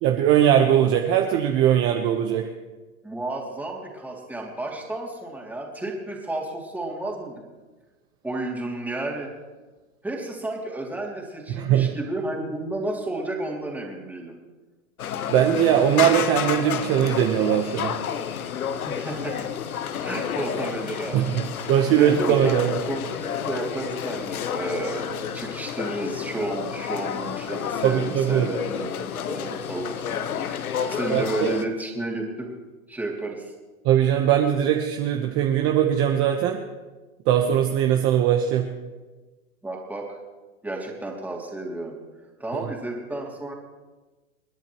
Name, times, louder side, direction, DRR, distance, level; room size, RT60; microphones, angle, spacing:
voice 1, 0.0-2.4 11.5-11.9 15.3-17.9 21.1-22.7 27.8-28.5 31.1-31.5 33.8-36.6 37.3-38.7, right 10 dB, 30° right, 3 dB, 1.1 m, -20 dB
voice 2, 3.0-7.4 8.2-9.3 10.0-14.3 18.8-19.4 20.0-21.3 22.0-22.6 22.9-30.6 30.9-32.5 32.9-33.4 39.6-40.1 40.6-41.9 42.4-43.5, right 2 dB, 5° right, -1 dB, 2.8 m, -32 dB
sound 1, 15.0-31.7, left 8 dB, 80° left, 1.1 m, -30 dB
28.5 x 10.5 x 3.1 m, 1.2 s
hypercardioid pair, 130°, 43 cm